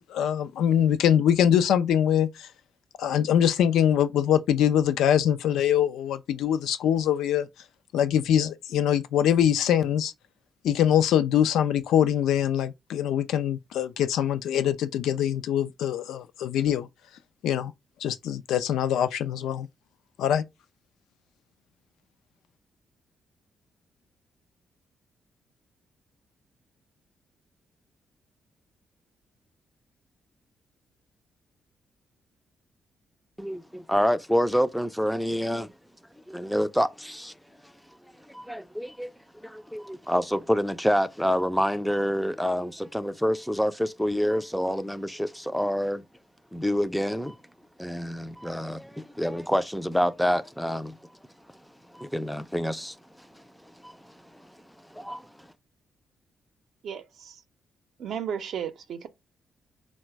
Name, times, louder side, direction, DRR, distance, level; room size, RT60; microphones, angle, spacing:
voice 1, 0.1-2.5 3.0-7.5 7.9-10.1 10.6-16.9 17.4-17.7 18.0-19.7 20.2-20.4, left 9 dB, 90° left, 0.4 m, -23 dB
voice 2, 33.4-35.7 36.3-37.3 37.6-37.7 38.3-39.1 39.4-46.0 46.5-47.4 47.8-51.0 51.9-53.4 53.8-54.5 54.9-55.5, equal, ahead, 0.3 m, -27 dB
voice 3, 56.8-57.4 58.0-59.1, right 8 dB, 70° right, 0.5 m, -34 dB
3.9 x 2.1 x 4.4 m
cardioid pair, 95°, 0 cm